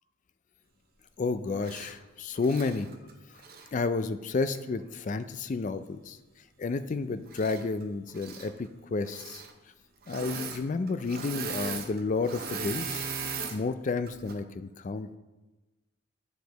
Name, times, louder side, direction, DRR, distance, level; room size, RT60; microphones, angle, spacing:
voice 1, 1.2-2.9 3.7-6.2 6.6-9.4 10.1-13.1 13.5-15.1, left 3 dB, 35° left, 12 dB, 0.3 m, -31 dB
Engine / Mechanisms, 1.6-1.9 2.4-3.7 4.5-4.6 7.3-7.8 8.1-8.5 9.0-9.5 10.0-10.6 10.9-13.6 14.1-14.3, right 5 dB, 45° right, 0.7 m, -38 dB
9.2 x 4.9 x 3.9 m, 1.1 s
head